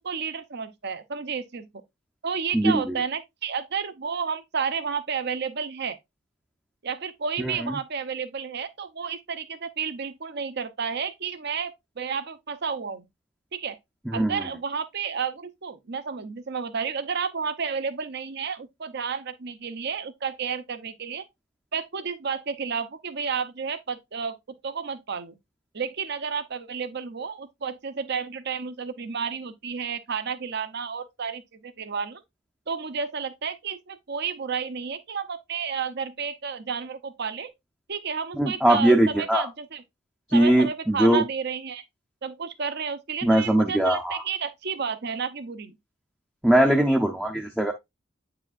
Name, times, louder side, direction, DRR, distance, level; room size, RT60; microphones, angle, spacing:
voice 1, 0.0-1.7 2.2-6.0 6.8-13.0 13.5-13.8 14.1-21.2 21.7-25.4 25.7-32.2 32.7-37.5 37.9-39.8 40.3-41.8 42.2-45.8, right 6 dB, 55° right, 0.7 m, -31 dB
voice 2, 7.4-7.8 14.1-14.4 38.4-39.5 40.3-41.2 43.2-44.2 46.4-47.7, right 1 dB, 5° right, 0.6 m, -21 dB
8.7 x 4.8 x 2.4 m
head